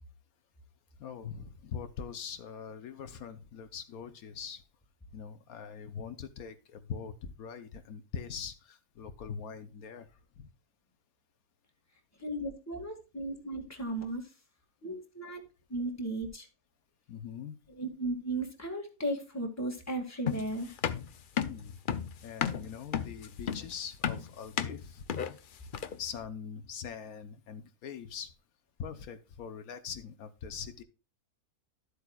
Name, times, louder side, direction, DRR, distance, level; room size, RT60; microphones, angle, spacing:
voice 1, 1.0-4.6 5.1-10.1 10.4-10.5 17.1-17.6 21.4-21.8 22.2-25.0 26.0-28.3 28.8-30.8, left 7 dB, 75° left, 9 dB, 1.2 m, -42 dB
voice 2, 12.2-14.2 14.8-15.4 15.7-16.5 17.7-20.8, right 1 dB, 10° left, 3 dB, 1.8 m, -35 dB
sound 1, 20.3-26.1, left 8 dB, 60° left, 0.5 m, -33 dB
12.5 x 8.1 x 2.3 m, 0.32 s
omnidirectional pair, 1.6 m